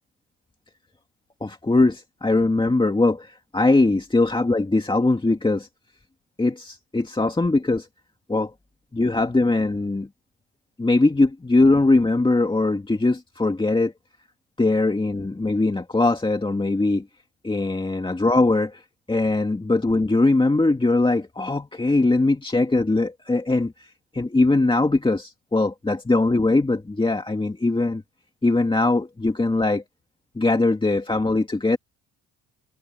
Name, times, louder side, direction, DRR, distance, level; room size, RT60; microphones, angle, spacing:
voice 1, 1.4-5.7 6.4-7.9 8.3-8.5 8.9-10.1 10.8-13.9 14.6-17.0 17.4-18.8 19.1-23.7 24.1-28.0 28.4-29.8 30.4-31.8, left 2 dB, 15° left, 2.2 m, -21 dB
cardioid pair, 85°, 33 cm